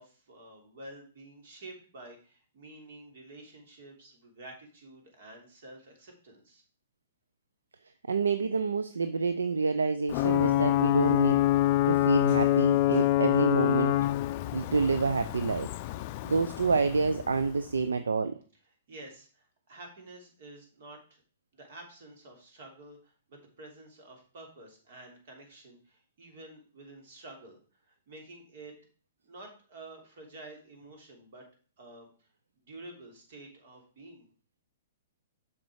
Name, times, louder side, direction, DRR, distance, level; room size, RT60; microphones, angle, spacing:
voice 1, 0.0-6.6 18.9-21.2 21.5-27.6 27.9-28.7 29.2-31.4 31.8-32.1 32.6-34.2, right 2 dB, 60° right, 2 dB, 3.1 m, -49 dB
voice 2, 8.1-11.4 11.9-14.0 14.5-15.7 16.2-18.4, right 4 dB, 80° right, 10 dB, 0.5 m, -28 dB
Ocean / Boat Water vehicle / Alarm, 10.1-17.7, left 14 dB, 45° left, 0.4 m, -26 dB
7.7 x 5.9 x 4.8 m, 0.40 s
hypercardioid pair, 120°, 0 cm